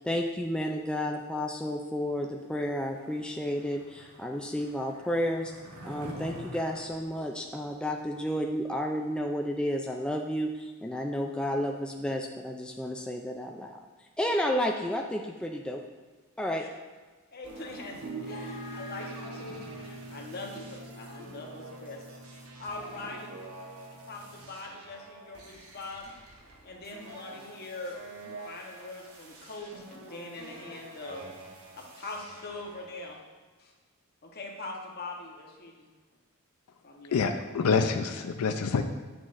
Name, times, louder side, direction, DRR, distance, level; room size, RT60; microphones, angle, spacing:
voice 1, 0.0-5.5 5.8-13.8 14.2-15.8 16.4-16.6, equal, 5° left, 2 dB, 0.3 m, -31 dB
voice 2, 0.7-1.2 16.6-16.7 17.3-22.1 22.6-23.3 23.9-26.2 26.6-28.0 28.4-31.3 31.8-33.2 33.6-33.7 34.2-35.9 36.8-37.1, left 2 dB, 45° left, 1 dB, 1.0 m, -42 dB
Skateboard, 2.8-8.2, equal, 90° right, 1.3 m, -47 dB
sound 1, 17.4-33.1, right 1 dB, 75° right, 1.1 m, -48 dB
sound 2, 18.0-24.4, right 2 dB, 55° right, 0.9 m, -45 dB
voice 3, 37.1-38.8, left 5 dB, 80° left, 6 dB, 0.4 m, -26 dB
9.0 x 6.2 x 2.5 m, 1.4 s
head